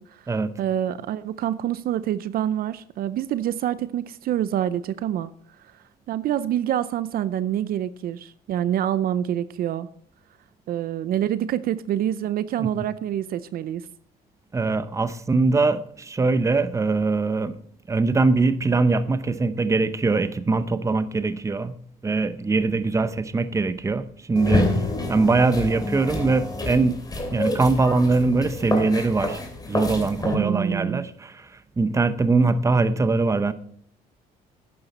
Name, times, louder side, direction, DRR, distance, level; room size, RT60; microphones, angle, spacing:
voice 1, 0.0-5.3 5.7-9.9 10.7-13.8 30.3-31.1, right 11 dB, 60° right, 0.6 m, -26 dB
voice 2, 14.5-17.5 17.9-21.7 22.0-24.8 25.1-27.0 27.3-29.4 29.7-31.5 31.8-33.5, right 3 dB, 20° right, 0.8 m, -22 dB
sound 1, 24.4-30.4, left 2 dB, 20° left, 2.8 m, -28 dB
12.0 x 8.7 x 4.2 m
cardioid pair, 110°, 17 cm